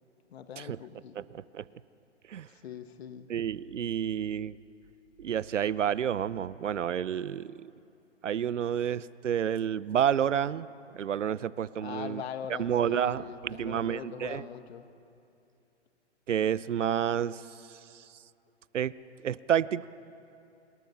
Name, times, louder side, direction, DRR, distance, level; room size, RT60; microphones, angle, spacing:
voice 1, 0.3-1.2 2.5-3.3 11.8-14.9, left 8 dB, 55° left, 9 dB, 1.8 m, -41 dB
voice 2, 1.1-1.6 2.3-2.5 3.3-4.5 5.2-7.7 8.2-10.7 10.9-12.2 12.6-14.4 16.3-17.4 18.7-18.9 19.2-19.9, right 9 dB, 75° right, 19 dB, 0.8 m, -29 dB
26.5 x 23.0 x 5.8 m, 2.6 s
hypercardioid pair, 130°, 37 cm